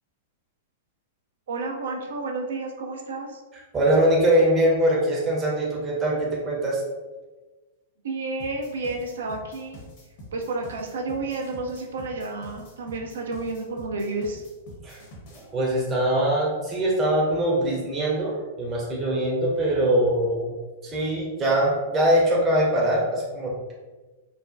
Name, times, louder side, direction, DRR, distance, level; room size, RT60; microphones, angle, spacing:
voice 1, 1.5-3.4 8.0-9.8 10.3-14.4, right 3 dB, 65° right, 1 dB, 0.4 m, -31 dB
voice 2, 3.7-6.8 14.8-15.0 15.3-20.5 20.8-23.7, right 1 dB, 20° right, -4 dB, 0.6 m, -22 dB
sound 1, 8.4-15.5, equal, 50° left, 0.8 m, -45 dB
3.0 x 2.1 x 2.5 m, 1.2 s
figure-of-eight pair, 100°, 0 cm